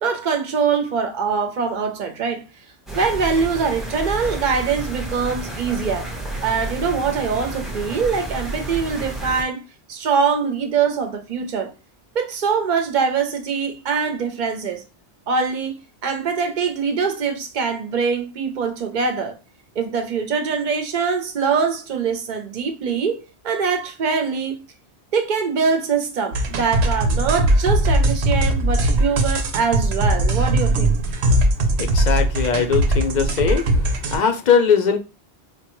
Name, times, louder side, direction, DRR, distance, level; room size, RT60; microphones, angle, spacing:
voice 1, 0.0-2.4 2.9-6.1 6.4-9.6 9.9-11.7 12.1-14.8 15.3-19.4 19.7-24.6 25.1-30.9, right 5 dB, 50° right, 0.7 m, -23 dB
sound 1, 2.9-9.4, right 2 dB, ahead, 0.7 m, -30 dB
sound 2, 26.3-34.2, right 1 dB, 85° right, 0.9 m, -19 dB
voice 2, 31.8-33.7 34.1-35.0, left 6 dB, 55° left, 0.6 m, -19 dB
4.5 x 2.1 x 3.0 m
omnidirectional pair, 1.1 m